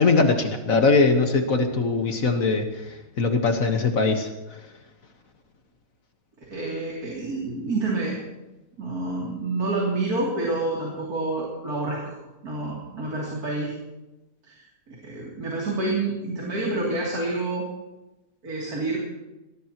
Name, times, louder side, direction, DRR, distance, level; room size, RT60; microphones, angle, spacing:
voice 1, 0.0-4.3, left 4 dB, 60° left, 5 dB, 1.8 m, -21 dB
voice 2, 6.5-8.2 8.8-12.2 12.4-13.8 14.4-14.6 14.9-17.7 18.4-19.0, right 2 dB, 80° right, -4 dB, 3.6 m, -28 dB
22.5 x 19.5 x 3.0 m, 1.0 s
omnidirectional pair, 1.6 m